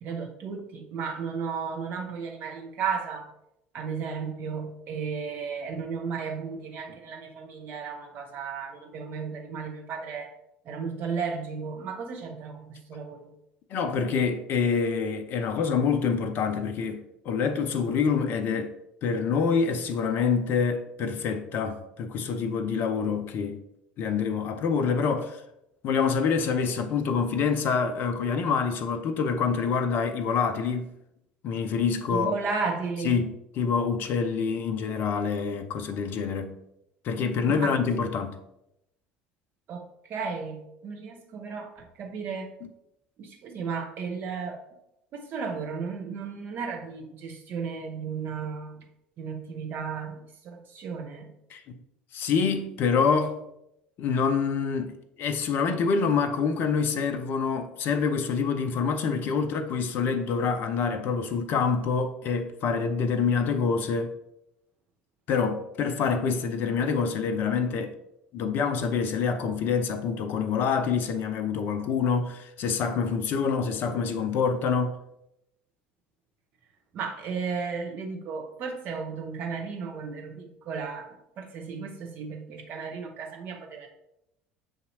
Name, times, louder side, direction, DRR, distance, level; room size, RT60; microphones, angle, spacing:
voice 1, 0.0-3.3 3.7-10.3 10.7-13.3 32.1-33.2 37.5-37.7 39.7-41.7 42.0-42.5 43.2-44.6 45.1-48.8 49.2-51.3 76.9-83.9, right 5 dB, 40° right, 0.9 m, -34 dB
voice 2, 13.7-18.7 19.0-23.6 24.0-25.4 25.8-30.9 31.4-32.4 33.0-36.6 37.0-38.4 42.6-42.7 51.5-51.8 52.1-53.4 54.0-64.1 65.3-68.0 68.3-75.0, left 5 dB, 45° left, 0.4 m, -26 dB
7.1 x 2.7 x 2.7 m
figure-of-eight pair, 65°, 5 cm